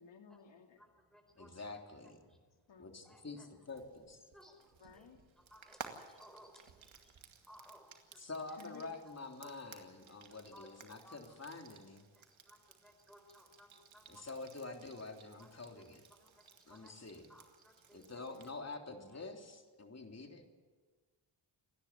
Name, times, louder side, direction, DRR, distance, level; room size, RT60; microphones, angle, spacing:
voice 1, 0.0-0.8 2.7-3.4 4.8-5.2 8.6-8.9 18.3-18.5, left 5 dB, 65° left, 4 dB, 2.8 m, -57 dB
voice 2, 0.8-1.7 3.0-3.4 4.3-5.1 5.5-7.2 7.5-8.2 9.4-9.5 10.3-11.2 12.2-14.3 15.4-15.5 16.2-16.9 17.3-18.0, equal, ahead, 5 dB, 4.6 m, -61 dB
voice 3, 1.4-2.2 2.8-4.2 8.2-12.0 14.1-16.0 16.7-17.3 17.9-20.5, left 3 dB, 30° left, 3 dB, 3.4 m, -47 dB
Frying (food), 3.7-18.5, right 6 dB, 75° right, 2.3 m, -57 dB
28.5 x 10.5 x 9.8 m, 1.4 s
cardioid pair, 65°, 48 cm